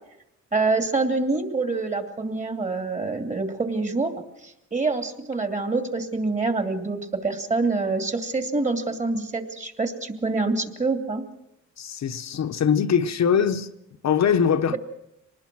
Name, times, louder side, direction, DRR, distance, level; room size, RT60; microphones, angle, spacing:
voice 1, 0.5-11.3 14.7-14.8, right 3 dB, 25° right, 2.9 m, -26 dB
voice 2, 11.8-13.7 14.0-14.8, left 7 dB, 65° left, 1.1 m, -22 dB
25.0 x 20.0 x 6.2 m
cardioid pair, 100°, 30 cm